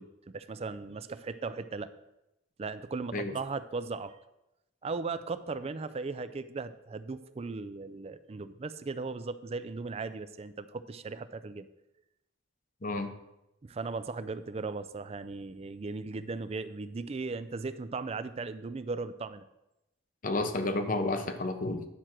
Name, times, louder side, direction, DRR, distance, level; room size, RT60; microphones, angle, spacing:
voice 1, 0.0-1.9 2.6-4.2 4.8-11.7 13.6-19.5, right 4 dB, 30° right, 13 dB, 0.4 m, -37 dB
voice 2, 12.8-13.1 20.2-21.9, left 2 dB, 45° left, 7 dB, 0.8 m, -31 dB
10.0 x 6.1 x 4.4 m, 0.91 s
head